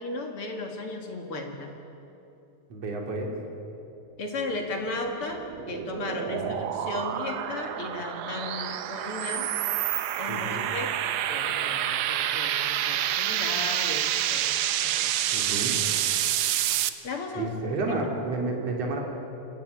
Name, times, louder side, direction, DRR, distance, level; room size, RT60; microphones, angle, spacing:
voice 1, 0.0-1.7 4.2-9.5 10.2-11.0 11.3-15.5 17.0-17.7, left 2 dB, 45° left, 3 dB, 2.5 m, -35 dB
voice 2, 2.7-3.3 6.3-6.6 10.3-10.7 15.3-15.8 17.4-19.0, right 2 dB, 50° right, 0 dB, 4.0 m, -31 dB
sound 1, 4.9-16.9, right 11 dB, 90° right, 1.4 m, -28 dB
26.0 x 15.0 x 9.8 m, 2.8 s
omnidirectional pair, 4.0 m